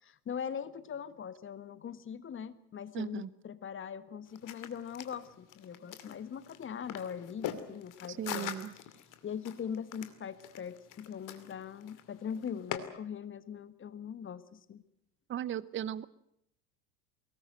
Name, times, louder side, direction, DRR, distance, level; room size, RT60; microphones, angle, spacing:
voice 1, 0.0-8.8 9.2-14.8, left 7 dB, 25° left, 15 dB, 1.4 m, -41 dB
voice 2, 2.9-3.3 8.1-8.7 15.3-16.0, right 10 dB, 25° right, 20 dB, 0.9 m, -37 dB
sound 1, 4.3-12.8, left 11 dB, 45° left, 2.5 m, -44 dB
23.0 x 19.0 x 7.8 m, 0.74 s
figure-of-eight pair, 80°, 46 cm